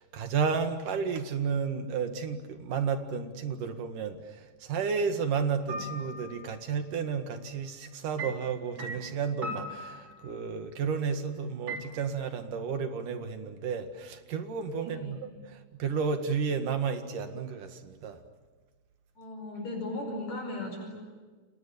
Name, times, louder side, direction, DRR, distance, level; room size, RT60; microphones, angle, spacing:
voice 1, 0.0-18.2, right 6 dB, 75° right, 7 dB, 3.4 m, -32 dB
sound 1, 5.7-6.4 8.2-10.5 11.7-11.8, right 1 dB, 40° right, 5.0 m, -39 dB
voice 2, 14.8-15.3 19.2-21.0, left 2 dB, 55° left, 2 dB, 6.4 m, -37 dB
30.0 x 27.0 x 7.1 m, 1.4 s
omnidirectional pair, 3.8 m